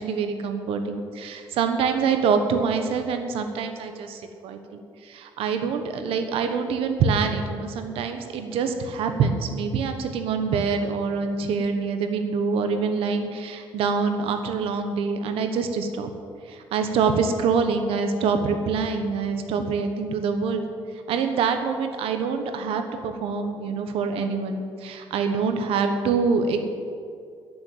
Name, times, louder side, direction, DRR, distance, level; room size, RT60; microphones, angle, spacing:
voice 1, 0.0-16.1 16.5-20.7 21.1-26.6, right 5 dB, 90° right, 6 dB, 1.3 m, -25 dB
11.5 x 7.1 x 9.3 m, 2.3 s
cardioid pair, 125°, 9 cm